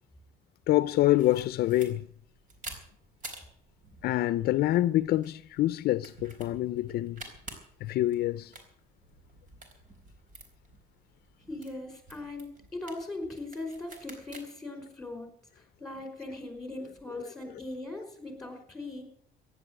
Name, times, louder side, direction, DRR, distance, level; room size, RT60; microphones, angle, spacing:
voice 1, 0.7-2.1 4.0-7.2 7.8-8.5 17.2-17.3, left 15 dB, 70° left, 0.5 m, -26 dB
sound 1, 1.2-14.4, right 2 dB, 50° right, 4.1 m, -50 dB
voice 2, 11.5-15.3 15.5-19.0, left 2 dB, 5° left, 5.1 m, -40 dB
15.0 x 10.5 x 7.8 m
cardioid pair, 110°, 17 cm